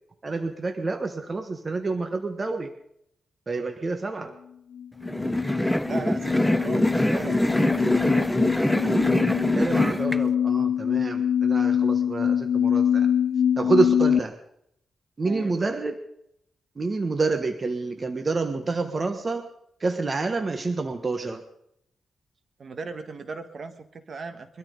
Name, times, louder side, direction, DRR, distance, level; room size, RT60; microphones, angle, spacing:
voice 1, 0.2-2.7 3.5-4.3 9.5-13.1 13.6-14.3 15.2-16.0 16.8-19.5 19.8-21.4, right 3 dB, 35° right, 6 dB, 1.4 m, -28 dB
sound 1, 4.8-14.2, left 8 dB, 80° left, 0.5 m, -25 dB
sound 2, 5.0-10.2, left 1 dB, 5° left, 0.5 m, -23 dB
voice 2, 5.8-8.3 15.2-15.5 22.6-24.6, right 4 dB, 50° right, 9 dB, 1.6 m, -37 dB
23.0 x 13.0 x 3.9 m, 0.73 s
cardioid pair, 95°, 0 cm